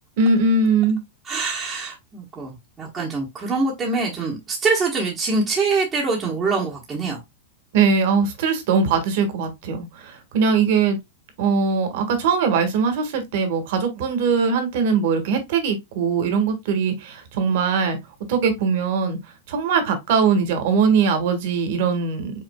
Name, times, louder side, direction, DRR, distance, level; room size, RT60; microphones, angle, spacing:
voice 1, 0.2-1.0 7.7-11.0 11.4-18.0 18.3-19.2 19.5-22.3, right 5 dB, 50° right, 1.4 m, -21 dB
voice 2, 1.3-7.2, right 4 dB, 15° right, 1.1 m, -24 dB
5.3 x 3.7 x 2.2 m
supercardioid pair, 170°, 0 cm